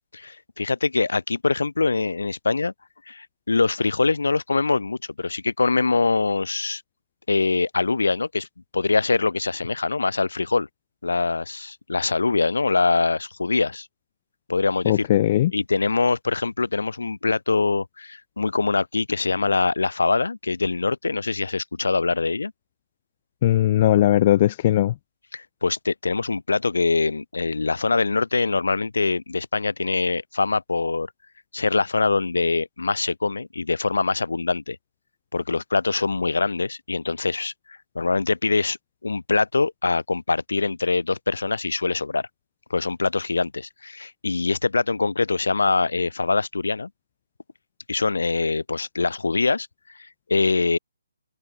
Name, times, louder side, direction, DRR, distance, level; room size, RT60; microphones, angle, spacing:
voice 1, 0.2-2.7 3.1-6.8 7.3-8.5 8.7-10.7 11.0-13.9 14.5-15.1 15.5-22.5 25.3-31.1 31.5-34.8 35.3-37.5 37.9-38.8 39.0-42.2 42.7-46.9 47.9-49.7 50.3-50.8, left 3 dB, 75° left, 0.8 m, -23 dB
voice 2, 14.9-15.5 23.4-24.9, left 13 dB, 35° left, 0.3 m, -18 dB
open air
figure-of-eight pair, 140°, 0 cm